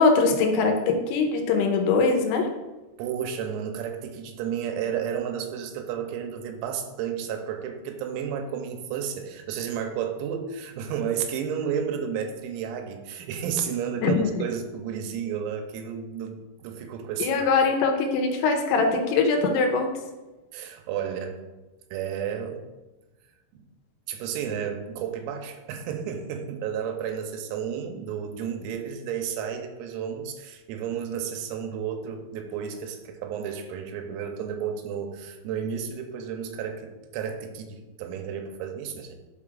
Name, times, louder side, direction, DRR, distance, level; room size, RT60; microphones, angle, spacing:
voice 1, 0.0-2.5 14.0-14.3 17.2-19.9, left 4 dB, 80° left, 3 dB, 3.5 m, -22 dB
voice 2, 3.0-17.5 20.5-21.4 21.9-22.7 23.5-23.6 24.1-39.2, right 8 dB, 90° right, 5 dB, 3.5 m, -32 dB
11.5 x 5.5 x 2.4 m, 1.1 s
omnidirectional pair, 6.0 m